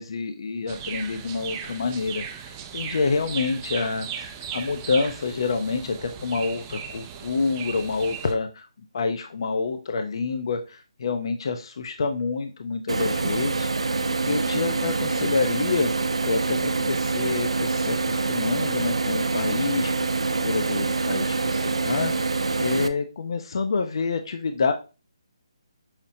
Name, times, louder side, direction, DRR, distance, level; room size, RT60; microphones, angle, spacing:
voice 1, 0.0-2.2 2.7-8.7 8.9-13.9 14.2-15.9 16.2-19.9 20.2-24.7, left 4 dB, 55° left, 6 dB, 0.4 m, -27 dB
sound 1, 0.7-8.3, right 8 dB, 20° right, 0.3 m, -37 dB
sound 2, 12.9-22.9, right 3 dB, 90° right, 0.4 m, -25 dB
5.6 x 2.0 x 2.6 m, 0.31 s
figure-of-eight pair, 155°, 3 cm